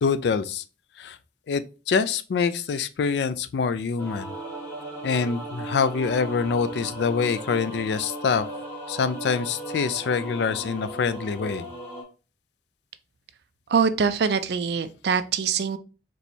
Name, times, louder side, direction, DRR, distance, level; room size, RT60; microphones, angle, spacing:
voice 1, 0.0-0.6 1.0-1.2 1.5-4.3 5.0-8.5 8.9-11.7, left 5 dB, 65° left, 0.3 m, -25 dB
sound 1, 4.0-12.0, right 1 dB, 10° left, 1.6 m, -36 dB
voice 2, 13.7-15.8, right 6 dB, 65° right, 0.4 m, -23 dB
4.3 x 3.1 x 2.7 m
head